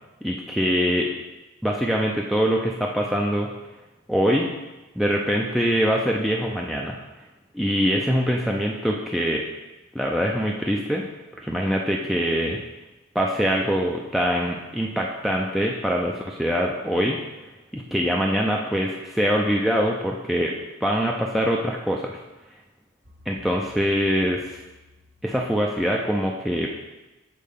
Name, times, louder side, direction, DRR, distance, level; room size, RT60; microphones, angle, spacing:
voice 1, 0.2-1.1 1.6-3.5 4.1-4.5 5.0-7.0 7.5-9.4 9.9-11.0 11.4-12.6 13.1-17.2 17.7-20.5 20.8-22.2 23.3-24.6 25.2-26.7, equal, ahead, -2 dB, 0.3 m, -23 dB
sound 1, 23.0-26.2, left 3 dB, 45° right, 1.3 m, -54 dB
8.4 x 4.3 x 3.6 m, 1.1 s
head